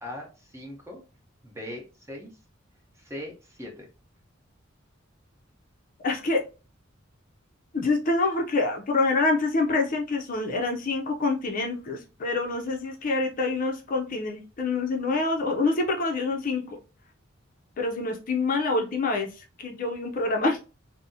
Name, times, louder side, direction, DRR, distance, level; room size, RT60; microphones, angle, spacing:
voice 1, 0.0-1.0 1.4-2.3 3.0-3.9, left 1 dB, 15° right, 0 dB, 0.8 m, -40 dB
voice 2, 6.0-6.4 7.7-16.6 17.8-20.6, left 3 dB, 45° left, 3 dB, 0.5 m, -26 dB
4.0 x 2.0 x 2.6 m, 0.32 s
head